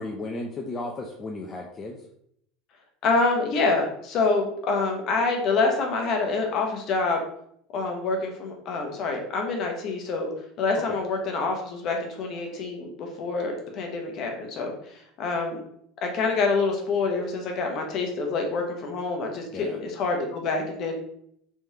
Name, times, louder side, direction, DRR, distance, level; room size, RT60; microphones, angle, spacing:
voice 1, 0.0-2.0 10.9-11.0 19.5-19.8, left 2 dB, 30° left, 0 dB, 0.5 m, -34 dB
voice 2, 3.0-7.2 7.7-10.3 10.6-15.6 16.0-21.0, left 3 dB, 50° left, 2 dB, 0.8 m, -26 dB
3.4 x 3.2 x 2.8 m, 0.71 s
supercardioid pair, 110°, 0 cm